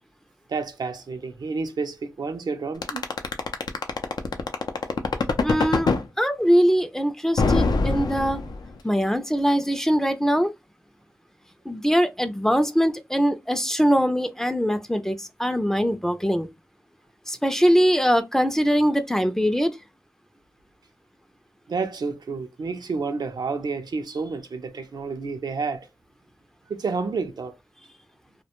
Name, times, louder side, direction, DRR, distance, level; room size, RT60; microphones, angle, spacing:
voice 1, 0.5-3.1 21.7-25.9 26.7-27.5, right 4 dB, 80° right, 0.4 m, -30 dB
sound 1, 2.8-6.0 7.4-8.8, left 4 dB, 80° left, 0.4 m, -22 dB
voice 2, 5.4-5.9 6.2-8.4 8.8-10.5 11.7-16.5 17.3-19.8, equal, 5° left, 0.4 m, -22 dB
2.4 x 2.1 x 2.9 m
wide cardioid pair, 55°, 7 cm